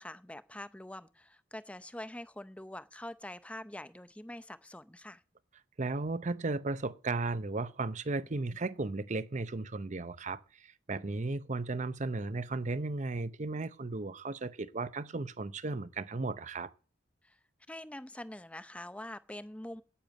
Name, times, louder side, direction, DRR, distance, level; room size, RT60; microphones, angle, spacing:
voice 1, 0.0-5.2 17.2-17.4 17.7-19.8, left 1 dB, 5° left, 0.6 m, -45 dB
voice 2, 5.8-16.7, right 3 dB, 40° right, 0.7 m, -35 dB
10.0 x 9.2 x 8.1 m
head